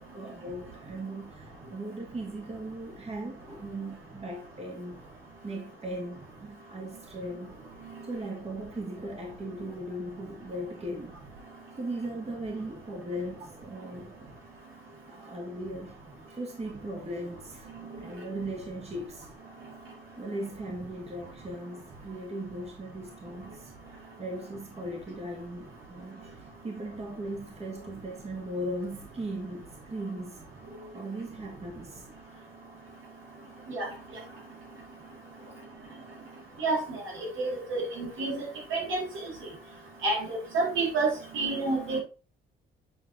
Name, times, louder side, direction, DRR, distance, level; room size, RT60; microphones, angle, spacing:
voice 1, 0.0-5.0 5.4-7.6 8.1-11.1 11.8-14.3 15.1-16.0 16.3-17.7 18.0-19.3 20.2-23.7 24.2-30.5 30.8-32.0 32.3-32.4 35.4-35.6 36.1-36.4, right 1 dB, 30° right, 2.1 m, -38 dB
voice 2, 37.4-38.5 38.7-39.0 40.0-40.3 40.5-42.0, right 3 dB, 80° right, 4.0 m, -28 dB
9.1 x 4.4 x 3.7 m
cardioid pair, 90°, 20 cm